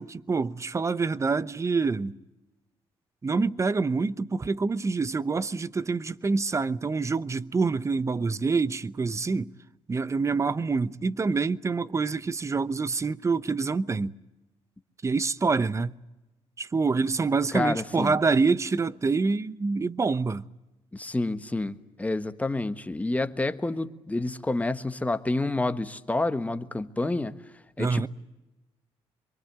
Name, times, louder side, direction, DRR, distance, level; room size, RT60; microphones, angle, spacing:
voice 1, 0.0-2.1 3.2-9.5 9.9-14.1 15.0-15.9 16.6-20.5 27.8-28.1, right 4 dB, 25° right, 0.8 m, -26 dB
voice 2, 17.5-18.2 20.9-27.3 27.8-28.1, left 2 dB, 15° left, 1.3 m, -29 dB
26.0 x 23.5 x 8.1 m
cardioid pair, 95°, 11 cm